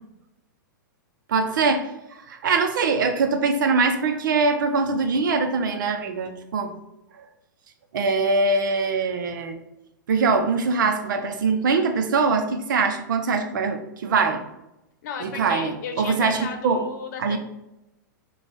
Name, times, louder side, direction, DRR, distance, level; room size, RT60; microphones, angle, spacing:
voice 1, 1.3-6.7 7.9-9.6 10.1-14.4 15.2-16.8 17.2-17.4, right 4 dB, 75° right, 6 dB, 0.7 m, -23 dB
voice 2, 15.0-17.4, left 6 dB, 60° left, 5 dB, 0.8 m, -34 dB
5.1 x 2.3 x 3.2 m, 0.92 s
hypercardioid pair, 125°, 11 cm